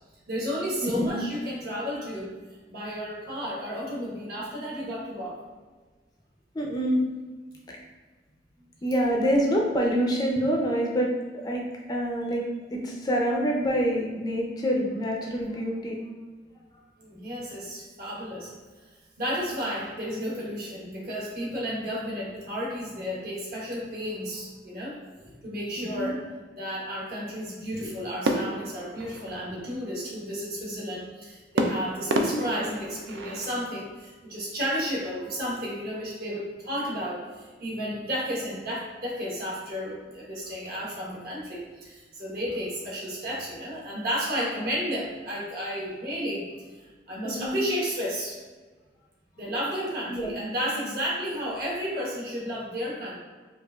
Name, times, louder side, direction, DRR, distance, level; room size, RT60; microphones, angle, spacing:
voice 1, 0.3-2.4 2.7-5.4 17.0-18.5 19.2-25.0 25.4-26.2 26.6-46.5 46.7-48.4 49.4-53.2, equal, 55° right, -5 dB, 1.1 m, -32 dB
voice 2, 0.8-1.1 6.5-7.0 7.7-7.8 8.8-11.1 11.3-11.6 11.9-12.4 12.7-16.0 25.8-26.1 27.8-27.9 32.1-32.5 47.2-47.6 50.1-50.3, equal, 20° left, -1 dB, 0.4 m, -26 dB
sound 1, 28.2-29.8 31.6-33.6, right 2 dB, 85° right, 0.4 m, -30 dB
4.9 x 2.4 x 2.3 m, 1.4 s
head